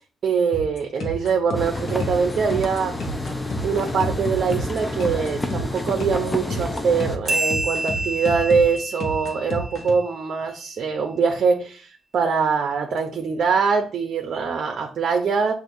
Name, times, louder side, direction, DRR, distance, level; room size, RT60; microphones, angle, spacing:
voice 1, 0.2-3.0 3.6-15.5, right 5 dB, 60° right, 4 dB, 0.6 m, -23 dB
sound 1, 0.5-9.9, equal, 65° left, 0.9 m, -31 dB
sound 2, 1.5-7.2, left 2 dB, 15° left, 0.6 m, -30 dB
sound 3, 7.3-10.3, right 1 dB, 25° right, 1.1 m, -28 dB
6.3 x 2.5 x 2.6 m, 0.38 s
cardioid pair, 90°, 0 cm